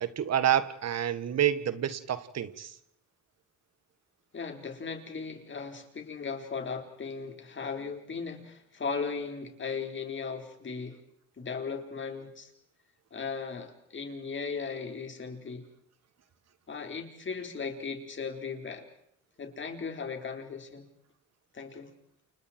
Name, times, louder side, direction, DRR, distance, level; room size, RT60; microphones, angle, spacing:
voice 1, 0.0-2.7, right 10 dB, 60° right, 1.9 m, -28 dB
voice 2, 4.3-11.0 11.4-12.5 13.1-15.6 16.7-18.9 19.4-20.9 21.5-21.9, left 5 dB, 40° left, 4.7 m, -37 dB
30.0 x 29.0 x 4.6 m
cardioid pair, 90°, 30 cm